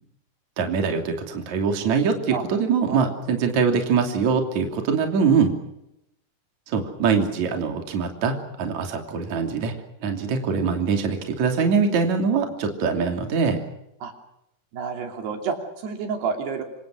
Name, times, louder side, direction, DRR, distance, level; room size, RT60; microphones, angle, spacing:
voice 1, 0.6-5.5 6.7-9.7 10.0-13.6, right 5 dB, 45° right, 4 dB, 4.0 m, -23 dB
voice 2, 14.7-16.6, right 5 dB, 75° right, 4 dB, 4.9 m, -29 dB
27.0 x 26.0 x 6.3 m, 0.84 s
omnidirectional pair, 4.7 m